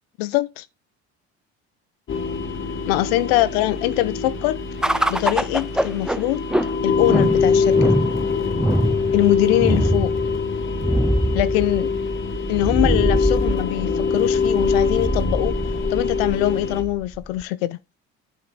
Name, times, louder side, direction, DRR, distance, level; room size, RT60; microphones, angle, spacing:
voice 1, 0.2-0.7 2.9-4.6 5.1-6.4 6.8-7.9 9.1-10.1 11.3-11.9 12.5-15.5 15.9-17.8, left 16 dB, 90° left, 0.6 m, -22 dB
sound 1, 2.1-16.8, left 5 dB, 40° left, 1.8 m, -24 dB
sound 2, 4.8-17.4, right 1 dB, ahead, 0.4 m, -24 dB
9.0 x 5.6 x 3.9 m
supercardioid pair, 85°, 30 cm